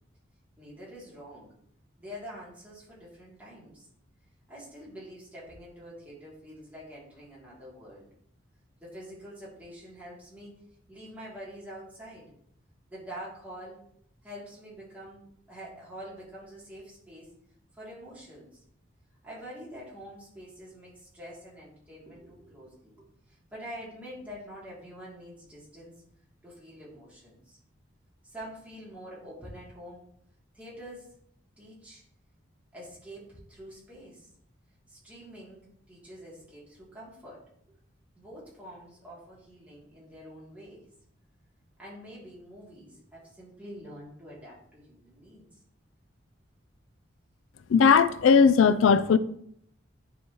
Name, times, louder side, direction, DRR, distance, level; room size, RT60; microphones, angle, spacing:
voice 1, 0.6-1.5 2.0-3.9 4.5-8.1 8.8-10.6 10.9-12.3 12.9-13.8 14.2-17.3 17.7-18.6 19.2-26.0 26.4-27.6 28.2-30.1 30.5-31.1 31.6-32.0 32.7-34.3 34.9-35.6 35.9-37.4 38.1-40.8 41.8-45.6, equal, 10° right, 2.9 m, -46 dB
voice 2, 47.7-49.2, left 6 dB, 90° left, 0.4 m, -18 dB
9.9 x 4.9 x 3.1 m
head